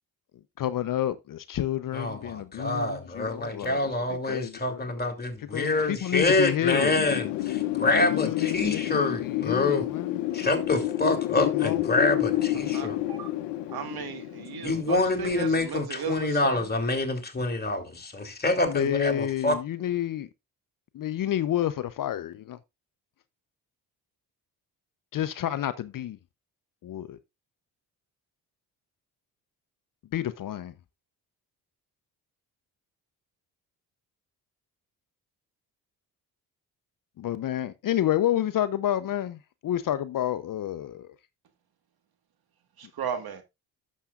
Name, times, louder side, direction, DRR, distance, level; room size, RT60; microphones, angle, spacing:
voice 1, 0.6-3.8 4.1-5.1 5.5-6.9 7.8-10.2 11.3-11.8 18.6-20.3 20.9-22.6 25.1-26.2 26.8-27.2 30.1-30.7 37.2-41.1, left 11 dB, 55° left, 0.7 m, -30 dB
voice 2, 1.9-9.9 10.3-13.0 14.6-19.5, left 2 dB, 25° left, 3.1 m, -26 dB
Wind, 6.7-15.4, left 15 dB, 80° left, 0.8 m, -29 dB
voice 3, 12.7-13.3 13.7-16.7 42.8-43.4, right 7 dB, 65° right, 1.8 m, -36 dB
11.0 x 7.3 x 2.5 m
supercardioid pair, 65°, 40 cm